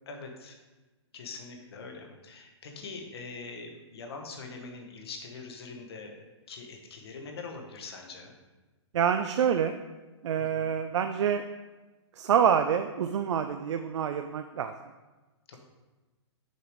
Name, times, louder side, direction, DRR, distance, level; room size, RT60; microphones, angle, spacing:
voice 1, 0.1-0.6 1.1-8.3 10.5-10.7 15.5-15.6, left 4 dB, 60° left, 3 dB, 1.1 m, -43 dB
voice 2, 8.9-9.8 10.2-11.4 12.2-14.7, right 8 dB, 80° right, 7 dB, 0.4 m, -26 dB
6.6 x 5.0 x 3.1 m, 1.2 s
hypercardioid pair, 170°, 15 cm